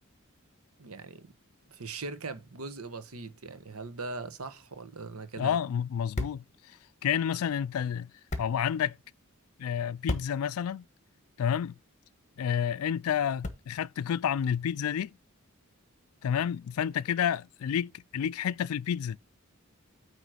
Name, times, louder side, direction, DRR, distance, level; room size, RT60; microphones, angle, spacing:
voice 1, 0.8-1.3 1.7-5.6, right 3 dB, 90° right, 1.2 m, -40 dB
sound 1, 4.9-14.0, left 2 dB, 35° left, 1.3 m, -42 dB
voice 2, 5.4-6.8 7.0-8.1 8.4-9.0 9.6-10.8 11.4-11.7 12.4-15.1 16.2-19.2, left 8 dB, 80° left, 0.4 m, -30 dB
9.1 x 3.2 x 6.2 m
head